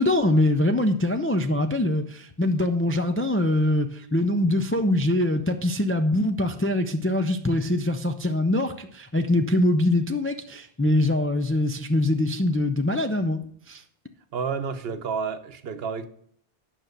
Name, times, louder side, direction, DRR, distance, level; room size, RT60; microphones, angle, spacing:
voice 1, 0.0-13.4 13.7-13.8, left 1 dB, 20° left, 0.4 m, -23 dB
voice 2, 14.3-16.1, right 6 dB, 75° right, 1.0 m, -30 dB
9.1 x 5.8 x 6.5 m
omnidirectional pair, 1.0 m